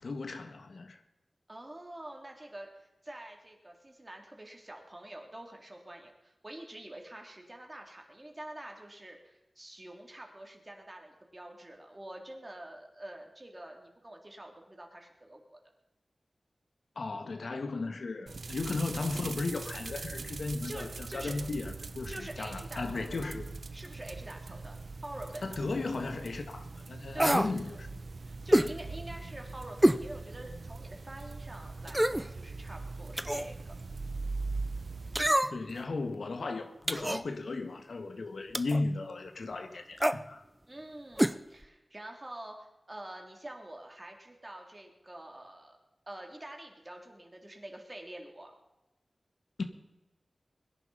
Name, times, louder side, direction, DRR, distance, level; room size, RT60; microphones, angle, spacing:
voice 1, 0.0-1.0 16.9-23.5 25.4-27.9 28.5-28.7 35.5-40.4 49.6-49.7, left 3 dB, 80° left, 1.6 m, -36 dB
voice 2, 1.5-15.6 20.4-21.4 22.1-23.3 23.7-25.6 27.1-27.8 28.2-33.7 40.7-45.8 46.1-48.5, right 1 dB, 30° right, 3.3 m, -46 dB
sound 1, 18.3-35.3, right 3 dB, 75° right, 0.8 m, -41 dB
sound 2, 27.2-27.5 28.5-28.7 29.8-30.0 30.5-30.6 31.9-32.3 33.2-33.5 35.2-35.7 36.9-37.2 38.5-38.8 40.0-40.2 41.2-41.4 41.6-41.7, right 1 dB, 10° right, 0.6 m, -26 dB
21.5 x 11.0 x 5.6 m
wide cardioid pair, 65°, 0 cm